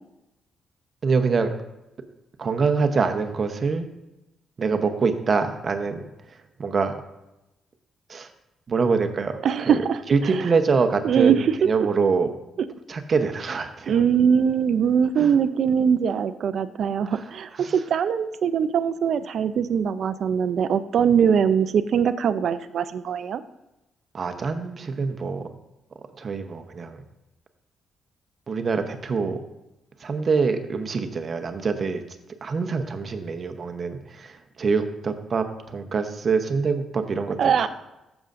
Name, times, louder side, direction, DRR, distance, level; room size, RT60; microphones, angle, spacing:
voice 1, 1.0-1.5 2.4-3.9 4.6-6.0 6.6-6.9 8.1-8.3 8.7-9.4 9.7-9.8 10.1-12.3 12.9-14.0 15.2-15.3 17.1-17.2 17.6-17.7 24.1-25.5 26.2-27.0 28.5-29.4 30.0-32.0 32.4-37.7, right 4 dB, 40° right, 7 dB, 0.9 m, -25 dB
voice 2, 9.4-10.5 11.0-11.6 13.9-23.4 37.4-37.7, right 7 dB, 60° right, 12 dB, 0.5 m, -22 dB
14.5 x 7.0 x 2.6 m, 0.95 s
cardioid pair, 115°, 0 cm